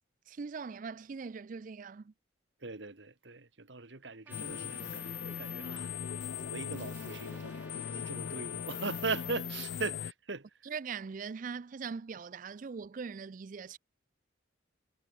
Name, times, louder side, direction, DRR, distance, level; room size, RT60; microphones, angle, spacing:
voice 1, 0.3-2.1 10.6-13.8, right 5 dB, 45° right, 0.4 m, -41 dB
voice 2, 2.6-5.9 6.4-10.5, right 3 dB, 65° right, 1.7 m, -40 dB
sound 1, 4.3-10.1, left 8 dB, 65° left, 0.4 m, -39 dB
Trumpet, 4.3-9.4, right 2 dB, 10° right, 2.2 m, -55 dB
head